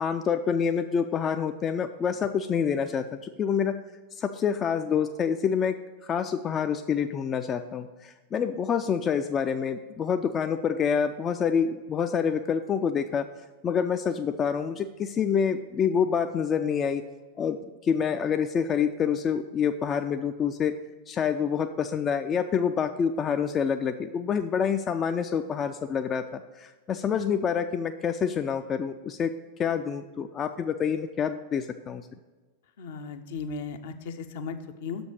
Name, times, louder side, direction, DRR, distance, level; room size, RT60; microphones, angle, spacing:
voice 1, 0.0-3.7 4.2-5.8 6.0-13.3 13.6-17.0 17.4-20.7 21.1-29.3 29.6-32.1, left 7 dB, 30° left, 8 dB, 0.3 m, -27 dB
voice 2, 32.8-35.1, left 5 dB, 60° left, 7 dB, 0.6 m, -36 dB
6.6 x 5.2 x 6.4 m, 1.3 s
figure-of-eight pair, 90°, 0 cm